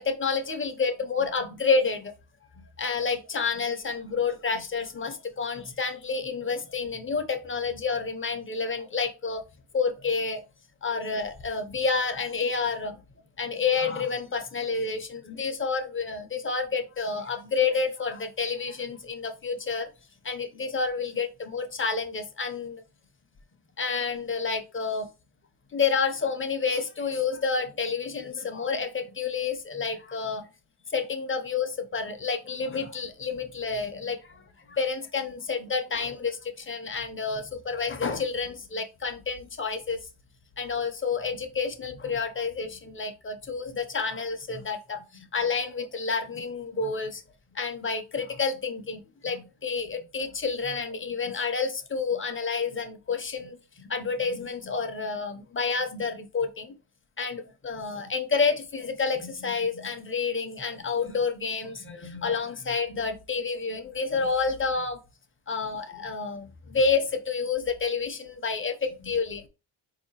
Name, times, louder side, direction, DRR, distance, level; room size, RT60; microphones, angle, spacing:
voice 1, 0.0-2.1 2.8-9.4 9.7-10.4 10.8-13.0 13.4-19.9 20.2-22.8 23.8-25.1 25.7-30.5 30.9-40.0 40.6-47.2 47.5-56.7 57.2-65.0 65.5-69.4, left 5 dB, 25° left, 0.5 m, -29 dB
4.1 x 2.8 x 2.8 m
wide cardioid pair, 120°, 49 cm